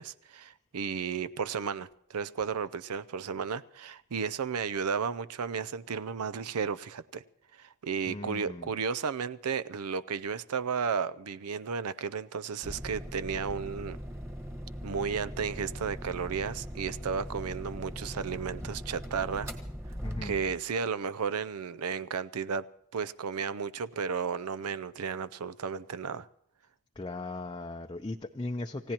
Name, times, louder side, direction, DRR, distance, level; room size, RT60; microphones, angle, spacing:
voice 1, 0.0-7.2 7.6-14.0 14.8-19.5 20.2-22.7 22.9-26.3, right 6 dB, 80° right, 0.5 m, -33 dB
voice 2, 8.1-8.7 20.0-20.3 27.0-28.9, left 2 dB, 20° left, 0.6 m, -37 dB
sound 1, 12.6-20.7, equal, 10° right, 1.5 m, -40 dB
29.0 x 16.0 x 2.9 m
head